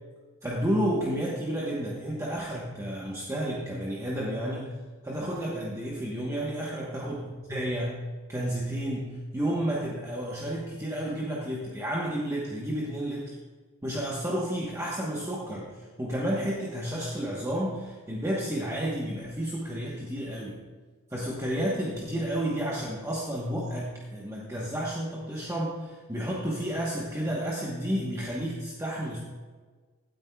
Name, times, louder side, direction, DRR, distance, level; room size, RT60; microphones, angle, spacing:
voice 1, 0.4-4.7 5.0-7.2 7.5-8.0 8.3-13.4 13.8-20.6 21.1-29.2, equal, 15° right, -4 dB, 1.1 m, -31 dB
16.0 x 9.6 x 2.3 m, 1.4 s
head